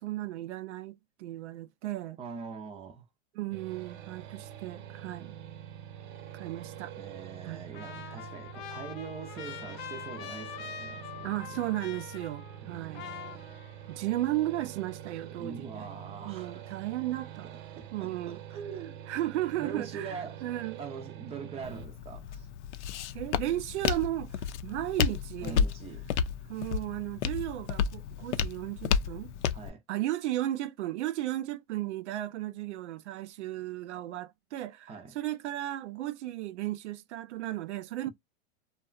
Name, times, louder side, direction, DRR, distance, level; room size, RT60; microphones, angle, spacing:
voice 1, 0.0-2.2 3.3-5.4 6.3-6.9 7.4-7.7 8.1-8.2 11.2-13.1 13.9-15.9 16.3-17.5 17.9-18.4 19.1-20.8 23.1-25.6 26.5-29.3 29.9-38.1, right 15 dB, 90° right, 0.5 m, -35 dB
voice 2, 2.2-3.0 7.0-11.6 12.6-13.5 15.4-16.7 17.4-19.0 19.6-20.4 20.8-22.5 25.4-26.1 29.5-29.8 34.9-35.2, right 5 dB, 20° right, 0.4 m, -43 dB
sound 1, 3.5-21.9, right 10 dB, 50° right, 0.7 m, -45 dB
Trumpet, 7.7-12.7 12.9-14.0, left 9 dB, 50° left, 0.6 m, -44 dB
Walk footsteps, 21.6-29.7, left 7 dB, 90° left, 0.5 m, -32 dB
2.7 x 2.2 x 2.3 m
supercardioid pair, 140°, 34 cm